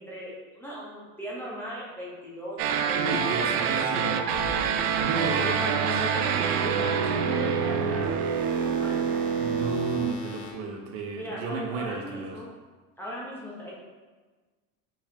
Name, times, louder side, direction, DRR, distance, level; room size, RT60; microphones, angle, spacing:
voice 1, 0.0-4.2 5.4-6.3 6.6-8.1 8.5-9.1 11.1-12.5 13.0-13.7, equal, 5° left, -7 dB, 0.8 m, -38 dB
sound 1, 2.6-10.1, right 7 dB, 80° right, 0.6 m, -26 dB
voice 2, 2.9-4.2 4.8-5.4 9.4-12.4, right 3 dB, 60° right, 1 dB, 0.9 m, -33 dB
sound 2, 4.3-10.5, right 5 dB, 85° left, 1.1 m, -37 dB
5.3 x 3.5 x 2.9 m, 1.3 s
supercardioid pair, 130°, 45 cm